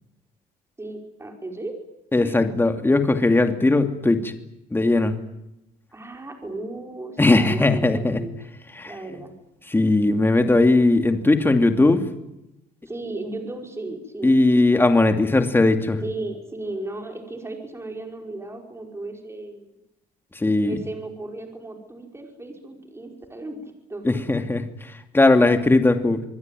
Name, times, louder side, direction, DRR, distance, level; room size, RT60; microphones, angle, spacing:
voice 1, 0.8-1.8 2.2-2.4 5.9-8.3 8.9-9.3 12.9-14.3 16.0-19.8 20.6-24.4, right 2 dB, 15° right, 2 dB, 5.4 m, -35 dB
voice 2, 2.1-4.3 4.7-5.1 7.2-8.2 8.8-8.9 9.7-12.0 14.2-16.0 20.3-20.8 24.0-26.2, left 2 dB, 15° left, 6 dB, 2.8 m, -19 dB
26.0 x 21.0 x 9.3 m, 0.89 s
cardioid pair, 105°, 16 cm